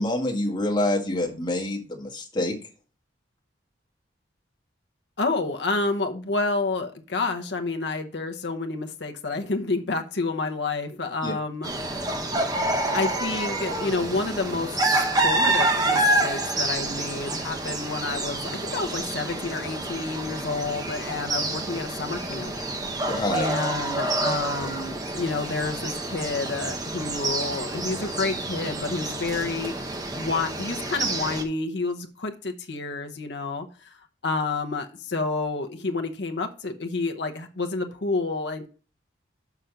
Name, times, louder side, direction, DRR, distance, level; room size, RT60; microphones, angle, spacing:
voice 1, 0.0-2.6 11.2-11.3 23.1-23.5, left 1 dB, 25° left, -1 dB, 1.6 m, -26 dB
voice 2, 5.2-11.7 12.9-22.5 23.3-29.7 30.2-34.0 34.2-38.7, left 3 dB, 65° left, 5 dB, 0.9 m, -29 dB
sound 1, 11.6-31.4, right 2 dB, 20° right, 1.0 m, -28 dB
6.0 x 5.8 x 5.1 m, 0.37 s
head